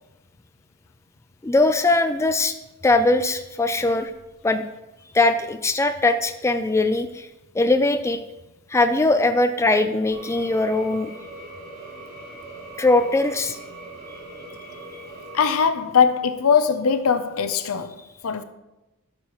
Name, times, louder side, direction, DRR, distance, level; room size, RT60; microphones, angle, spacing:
voice 1, 1.4-2.5 2.8-4.1 4.4-4.7 5.1-7.3 7.5-8.2 8.7-11.1 12.8-13.6, left 2 dB, 15° left, 0.3 m, -20 dB
sound 1, 10.1-15.5, right 2 dB, 45° right, 2.2 m, -40 dB
voice 2, 15.3-18.0 18.2-18.4, left 6 dB, 75° left, 0.6 m, -20 dB
12.5 x 6.5 x 3.0 m
head